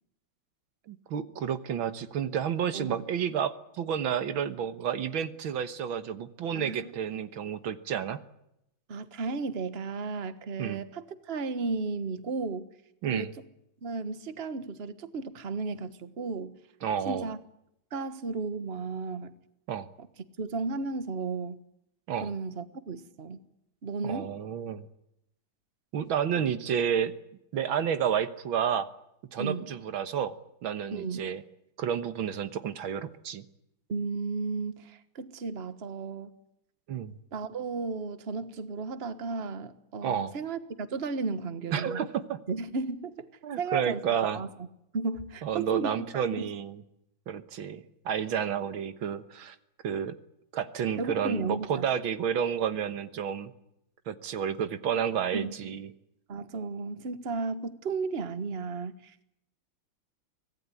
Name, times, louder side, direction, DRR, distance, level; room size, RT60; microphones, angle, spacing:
voice 1, 0.9-8.2 10.6-10.8 13.0-13.3 16.8-17.3 19.7-19.9 22.1-22.3 24.0-24.9 25.9-27.1 27.5-28.9 29.3-30.3 30.6-31.4 31.8-33.4 36.9-37.1 40.0-40.3 41.7-42.4 43.4-44.4 45.4-46.8 47.3-49.6 49.8-50.1 50.5-53.5 54.1-55.9, right 8 dB, 80° right, 2.0 m, -30 dB
voice 2, 6.5-6.9 8.9-12.7 13.1-13.3 13.8-16.6 17.1-17.4 17.9-19.3 20.0-20.1 20.4-21.6 22.2-23.4 23.8-24.3 29.4-29.7 30.9-31.2 33.9-36.4 37.3-42.0 42.5-43.3 43.6-44.7 44.9-46.5 51.0-51.9 55.3-55.8 56.3-59.2, right 4 dB, 35° right, 1.5 m, -34 dB
25.0 x 18.0 x 9.8 m
omnidirectional pair, 2.2 m